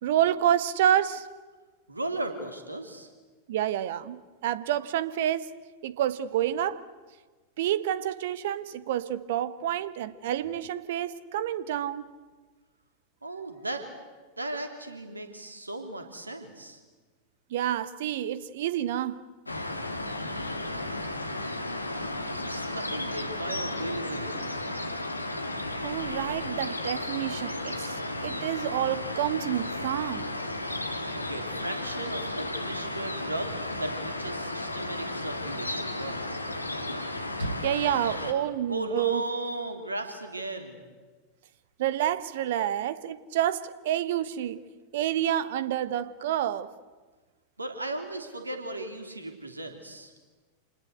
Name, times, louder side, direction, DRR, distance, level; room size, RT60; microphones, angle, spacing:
voice 1, 0.0-1.3 3.5-5.5 5.8-6.9 7.6-12.0 17.5-19.2 25.8-28.0 28.2-30.3 37.4-39.2 41.8-44.6 44.9-46.7, right 11 dB, 55° right, 1.1 m, -28 dB
voice 2, 1.9-3.1 13.2-13.8 14.4-16.8 22.3-24.6 31.1-33.5 33.8-36.2 38.7-40.8 47.6-50.1, right 1 dB, 80° right, 3.1 m, -36 dB
sound 1, 19.5-38.3, left 1 dB, 85° left, 1.9 m, -34 dB
27.5 x 20.0 x 8.2 m
figure-of-eight pair, 90°, 0 cm